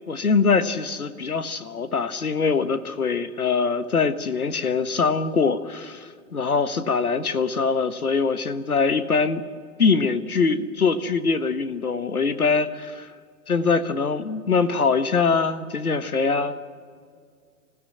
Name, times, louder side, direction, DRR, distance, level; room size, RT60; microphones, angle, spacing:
voice 1, 0.1-9.4 9.8-13.1 13.5-16.6, left 5 dB, 85° left, 11 dB, 1.5 m, -23 dB
26.0 x 16.5 x 7.8 m, 2.1 s
figure-of-eight pair, 120°, 43 cm